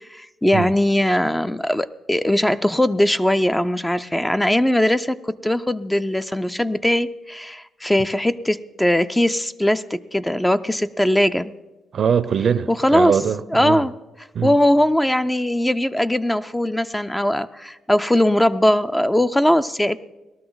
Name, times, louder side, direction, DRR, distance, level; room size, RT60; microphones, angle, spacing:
voice 1, 0.1-11.5 12.7-13.1 13.5-13.9 14.4-20.0, left 1 dB, 10° left, 0.5 m, -20 dB
voice 2, 11.9-13.8 14.3-14.5, right 7 dB, 60° right, 0.5 m, -22 dB
18.5 x 12.5 x 3.9 m
cardioid pair, 75°, 0 cm